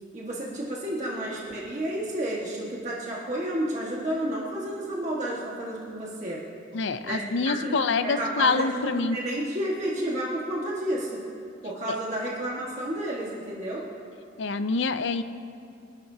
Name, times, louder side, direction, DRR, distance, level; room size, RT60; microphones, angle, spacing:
voice 1, 0.1-6.4 7.0-11.2 11.6-13.9, right 1 dB, 35° right, -5 dB, 1.6 m, -31 dB
voice 2, 6.7-9.2 14.4-15.2, left 4 dB, 65° left, 11 dB, 0.6 m, -26 dB
25.0 x 12.0 x 2.8 m, 2.5 s
head